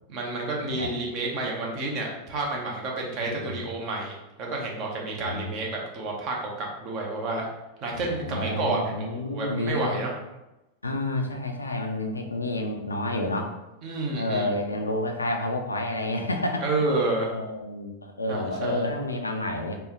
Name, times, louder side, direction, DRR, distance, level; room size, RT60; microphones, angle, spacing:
voice 1, 0.1-7.4 7.8-10.1 13.8-14.5 16.6-17.3 18.3-18.9, right 2 dB, 40° right, -1 dB, 0.8 m, -30 dB
voice 2, 3.2-3.6 5.2-5.5 7.9-10.0 10.8-13.5 14.1-16.6 17.3-19.8, left 2 dB, 80° left, 4 dB, 0.4 m, -30 dB
3.3 x 2.2 x 3.1 m, 0.97 s
figure-of-eight pair, 90°, 0 cm